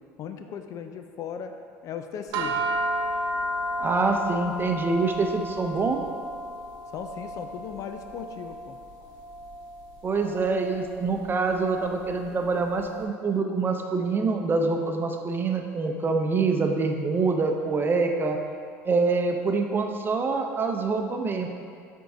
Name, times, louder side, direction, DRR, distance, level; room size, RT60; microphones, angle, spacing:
voice 1, 0.2-1.5 1.8-2.6 6.9-8.8 18.3-18.4, left 7 dB, 50° left, 7 dB, 0.4 m, -37 dB
sound 1, 2.3-12.8, equal, 60° right, 1.0 m, -33 dB
voice 2, 3.8-6.0 10.0-18.4 18.8-21.5, right 4 dB, 30° right, 4 dB, 0.6 m, -25 dB
7.6 x 4.5 x 2.7 m, 2.3 s
hypercardioid pair, 80°, 7 cm